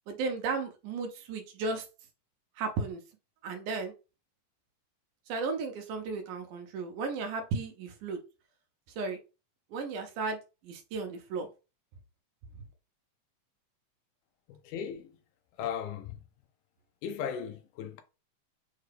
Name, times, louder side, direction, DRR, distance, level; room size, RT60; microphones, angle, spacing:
voice 1, 0.1-1.9 2.6-3.0 3.4-3.9 5.3-8.2 8.9-9.2 9.7-11.5, right 4 dB, 80° right, 2.2 m, -34 dB
voice 2, 14.5-15.1 15.6-16.2 17.0-18.0, left 8 dB, 85° left, 2.1 m, -37 dB
6.4 x 2.3 x 3.3 m
omnidirectional pair, 3.6 m